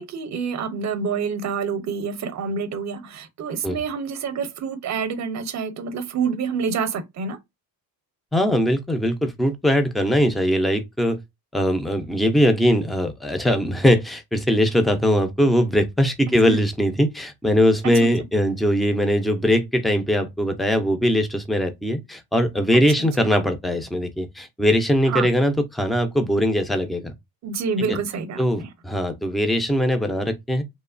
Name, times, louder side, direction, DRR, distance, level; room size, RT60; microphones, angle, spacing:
voice 1, 0.0-7.4 16.4-16.6 17.8-18.1 25.1-25.3 27.4-28.7, right 5 dB, 40° right, 0.6 m, -27 dB
voice 2, 8.3-11.2 11.5-27.1 27.9-28.0 28.4-30.6, equal, ahead, 0.3 m, -21 dB
3.0 x 2.0 x 2.4 m
cardioid pair, 115°, 43 cm